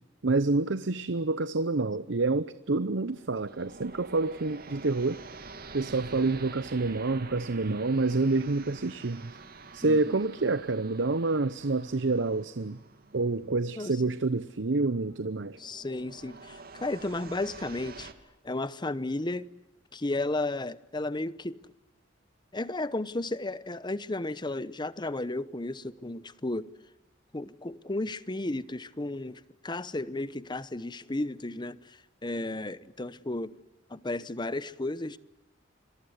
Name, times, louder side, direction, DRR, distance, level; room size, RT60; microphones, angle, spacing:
voice 1, 0.2-5.2 5.7-9.3 9.7-12.8 13.1-15.6, right 3 dB, 70° right, 0.8 m, -28 dB
sound 1, 2.9-18.1, right 4 dB, 55° right, 2.6 m, -48 dB
voice 2, 9.8-10.1 13.8-14.0 15.6-18.1 18.4-19.5 19.9-21.6 22.5-26.7 27.3-33.5 33.9-35.2, left 2 dB, 25° left, 0.9 m, -33 dB
27.0 x 22.5 x 8.1 m
head